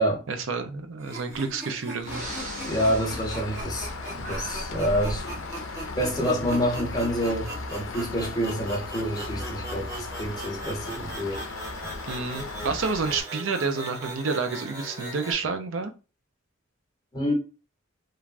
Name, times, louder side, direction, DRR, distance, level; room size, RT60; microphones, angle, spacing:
voice 1, 0.3-2.2 12.1-15.9, right 4 dB, 75° right, 0.5 m, -29 dB
sound 1, 1.0-15.3, right 1 dB, 15° right, 0.8 m, -40 dB
Breathing, 2.0-5.3, right 1 dB, 40° right, 0.9 m, -37 dB
Rain, 2.1-13.2, left 3 dB, 75° left, 0.5 m, -37 dB
voice 2, 2.6-5.4 5.7-11.4 11.8-11.9 17.1-17.3, equal, 20° left, 0.8 m, -28 dB
3.2 x 2.3 x 2.4 m
head